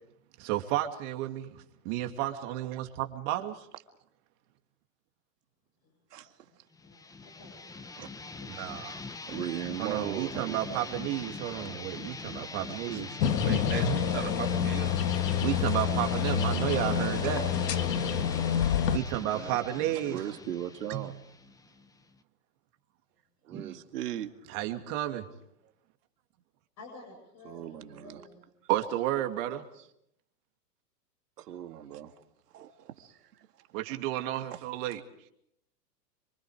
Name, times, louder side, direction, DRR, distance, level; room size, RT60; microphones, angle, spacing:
voice 1, 0.4-3.7 8.5-9.0 9.8-13.2 13.8-14.0 15.4-17.5 18.9-20.3 20.9-21.1 24.5-25.3 28.7-29.6 33.7-35.0, right 13 dB, 45° right, 2.7 m, -32 dB
voice 2, 6.1-6.6 8.0-8.1 9.3-11.0 20.1-21.2 23.4-24.3 27.4-28.3 29.8-29.9 31.4-32.1 32.5-33.5, right 11 dB, 70° right, 2.3 m, -38 dB
voice 3, 6.7-8.3 8.6-9.4 26.8-28.4, left 2 dB, 35° left, 7.7 m, -53 dB
sound 1, 6.8-22.2, left 4 dB, 5° left, 0.9 m, -42 dB
sound 2, 13.2-19.0, left 8 dB, 80° left, 1.8 m, -28 dB
voice 4, 13.4-14.9 16.7-16.9 23.5-23.8, right 8 dB, 20° right, 2.5 m, -38 dB
27.5 x 25.0 x 5.0 m
hypercardioid pair, 120°, 49 cm